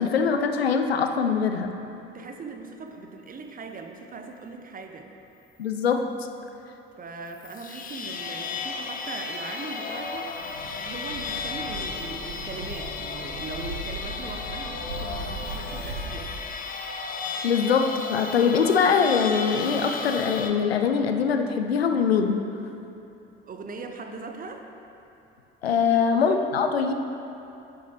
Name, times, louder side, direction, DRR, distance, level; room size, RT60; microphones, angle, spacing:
voice 1, 0.0-1.7 5.6-6.1 17.4-22.4 25.6-26.9, left 6 dB, 85° left, 6 dB, 0.5 m, -23 dB
voice 2, 2.1-5.1 7.0-16.3 23.5-24.7 25.9-26.2, right 4 dB, 30° right, 4 dB, 0.9 m, -40 dB
sound 1, 7.3-20.5, left 5 dB, 30° left, 0.7 m, -34 dB
sound 2, 10.2-16.3, right 2 dB, 85° right, 1.7 m, -38 dB
9.6 x 9.4 x 3.0 m, 2.8 s
figure-of-eight pair, 55°, 30 cm